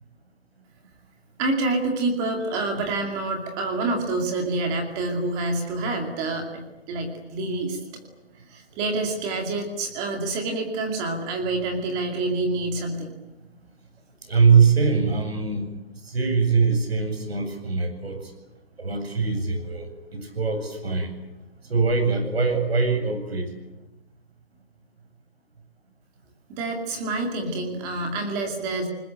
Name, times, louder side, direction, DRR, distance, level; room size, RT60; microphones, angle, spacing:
voice 1, 1.4-7.8 8.5-13.1 26.5-28.9, right 2 dB, 10° right, 3 dB, 2.4 m, -27 dB
voice 2, 14.2-15.8 16.0-18.3 18.8-19.9 20.1-21.1 21.6-23.5, right 5 dB, 75° right, 7 dB, 8.0 m, -22 dB
28.0 x 20.5 x 9.0 m, 1.0 s
hypercardioid pair, 175°, 31 cm